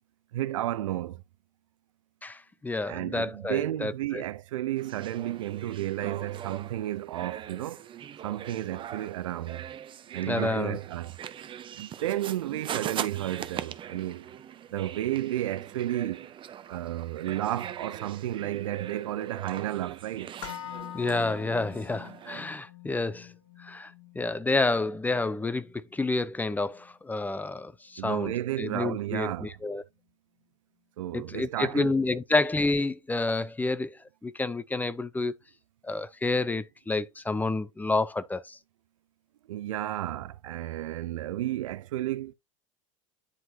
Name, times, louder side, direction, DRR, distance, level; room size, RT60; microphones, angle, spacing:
voice 1, 0.3-1.2 2.9-7.8 8.2-9.7 10.1-11.2 11.7-14.3 14.7-16.3 16.7-20.3 28.0-29.5 31.0-32.0 39.5-42.3, right 14 dB, 65° right, 0.6 m, -32 dB
voice 2, 2.2-4.2 10.3-10.8 20.9-23.3 23.6-28.3 28.6-29.8 31.1-34.0 34.2-35.3 35.8-38.6, left 3 dB, 10° left, 0.6 m, -29 dB
sound 1, 4.8-22.4, right 10 dB, 30° right, 0.7 m, -41 dB
sound 2, 20.4-28.5 28.8-28.9, left 11 dB, 65° left, 2.6 m, -46 dB
9.9 x 4.4 x 2.8 m
figure-of-eight pair, 80°, 17 cm